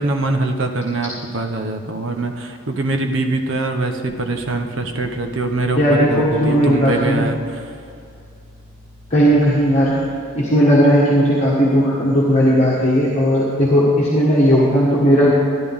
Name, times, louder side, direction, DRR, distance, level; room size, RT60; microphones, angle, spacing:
voice 1, 0.0-7.7, right 2 dB, 75° right, 5 dB, 0.9 m, -23 dB
sound 1, 4.0-10.2, left 1 dB, 25° right, 2.3 m, -44 dB
voice 2, 5.7-7.2 9.1-10.0 10.3-15.3, equal, 30° left, -7 dB, 1.5 m, -15 dB
13.5 x 10.5 x 3.6 m, 2.4 s
head